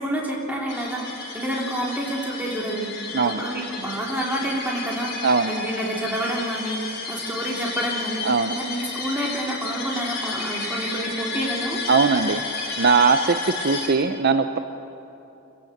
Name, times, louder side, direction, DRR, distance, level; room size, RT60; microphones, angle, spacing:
voice 1, 0.0-8.2 8.5-11.8, right 1 dB, 10° right, -2 dB, 3.5 m, -29 dB
sound 1, 0.7-13.9, left 3 dB, 55° left, 4.5 m, -32 dB
voice 2, 5.2-5.5 8.2-8.5 11.9-14.6, right 4 dB, 50° right, 9 dB, 0.6 m, -20 dB
26.0 x 16.0 x 7.9 m, 2.8 s
head